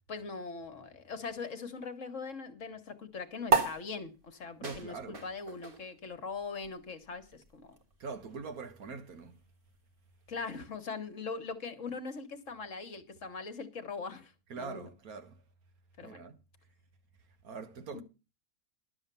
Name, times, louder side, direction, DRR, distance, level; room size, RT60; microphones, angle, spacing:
voice 1, 0.1-7.8 10.3-14.9 16.0-16.2 17.9-18.0, left 4 dB, 55° left, 1.6 m, -41 dB
sound 1, 3.5-10.3, right 5 dB, 35° right, 1.8 m, -36 dB
voice 2, 4.6-5.2 8.0-9.3 14.5-15.4 16.0-16.4 17.4-18.0, right 4 dB, 75° right, 1.7 m, -43 dB
12.0 x 7.3 x 6.8 m
omnidirectional pair, 1.6 m